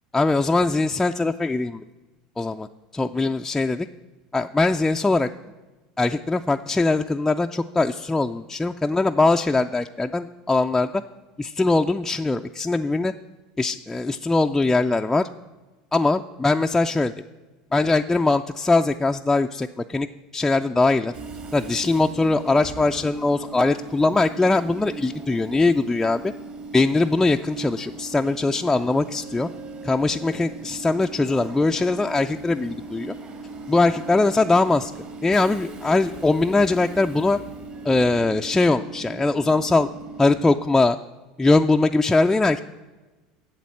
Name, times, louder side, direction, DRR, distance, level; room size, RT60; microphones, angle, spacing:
voice 1, 0.1-1.8 2.4-2.7 2.9-3.9 4.3-5.3 6.0-11.0 11.4-13.1 13.6-15.3 15.9-17.1 17.7-20.1 20.3-21.1 21.5-26.3 26.7-29.5 29.8-33.1 33.7-34.9 35.2-37.4 37.8-39.9 40.2-41.0 41.4-42.6, left 3 dB, 10° left, 4 dB, 0.3 m, -21 dB
Train / Subway metro underground, 21.1-40.6, right 3 dB, 40° right, 1.9 m, -38 dB
7.9 x 7.5 x 8.4 m, 1.2 s
supercardioid pair, 105°, 3 cm